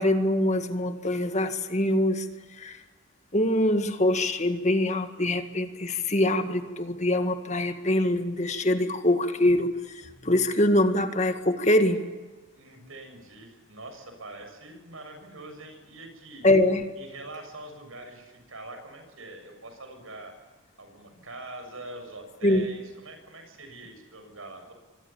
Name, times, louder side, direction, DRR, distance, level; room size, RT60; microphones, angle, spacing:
voice 1, 0.0-2.3 2.5-2.8 3.3-12.1 16.4-16.8 22.4-22.7, left 1 dB, 35° left, 8 dB, 1.9 m, -24 dB
voice 2, 12.5-16.5 17.0-20.3 20.8-24.7, right 2 dB, 80° right, 5 dB, 7.0 m, -44 dB
26.0 x 25.0 x 7.2 m, 1.3 s
head